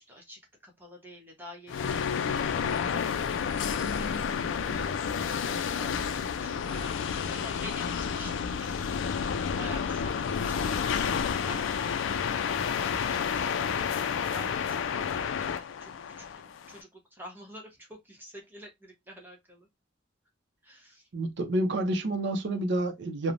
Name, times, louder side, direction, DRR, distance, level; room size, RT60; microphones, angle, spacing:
voice 1, 0.0-4.3 4.6-4.9 5.4-8.7 9.6-13.5 14.3-15.9 16.2-16.3 16.7-19.7 20.6-21.0, equal, 10° right, 0.9 m, -48 dB
sound 1, 1.7-16.8, left 7 dB, 80° left, 0.3 m, -30 dB
voice 2, 21.1-23.3, right 1 dB, 65° right, 0.5 m, -29 dB
3.1 x 2.1 x 2.5 m
head